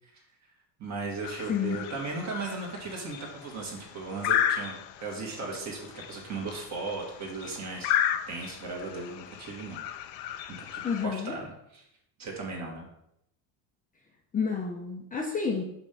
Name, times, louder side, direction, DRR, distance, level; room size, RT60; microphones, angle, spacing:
voice 1, 0.8-9.8 10.5-11.9 12.2-12.9, right 3 dB, 35° right, 0 dB, 2.0 m, -37 dB
sound 1, 1.2-11.1, left 10 dB, 85° left, 0.7 m, -34 dB
voice 2, 10.8-11.3 14.3-15.6, left 6 dB, 15° left, -1 dB, 0.6 m, -29 dB
5.9 x 4.6 x 5.3 m, 0.79 s
cardioid pair, 145°, 48 cm